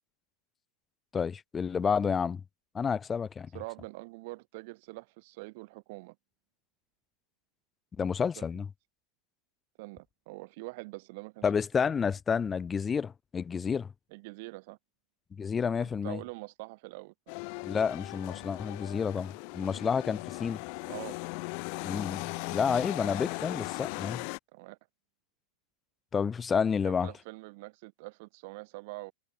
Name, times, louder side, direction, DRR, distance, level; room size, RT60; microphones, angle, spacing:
voice 1, 1.1-2.4 2.7-3.5 8.0-8.7 11.4-13.9 15.3-16.2 17.6-20.6 21.8-24.2 26.1-27.1, left 6 dB, 20° left, 1.1 m, -30 dB
voice 2, 3.5-6.2 8.4-8.5 9.8-11.9 14.1-14.8 15.8-17.1 20.9-21.2 24.5-24.8 26.8-29.1, right 25 dB, 50° right, 3.6 m, -44 dB
sound 1, 17.3-24.4, left 40 dB or more, 45° left, 4.2 m, -38 dB
figure-of-eight pair, 90°, 0 cm